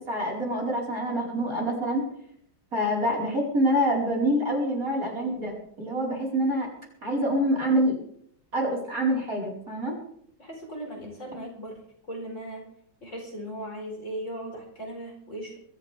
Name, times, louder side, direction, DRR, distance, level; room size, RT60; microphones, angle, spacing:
voice 1, 0.1-2.0 2.7-6.7 7.0-8.0 8.5-10.0, equal, 50° right, -3 dB, 5.5 m, -26 dB
voice 2, 10.4-11.8 12.1-12.6 13.0-15.6, right 1 dB, 40° left, 0 dB, 4.9 m, -37 dB
22.5 x 14.0 x 3.6 m, 0.66 s
omnidirectional pair, 1.9 m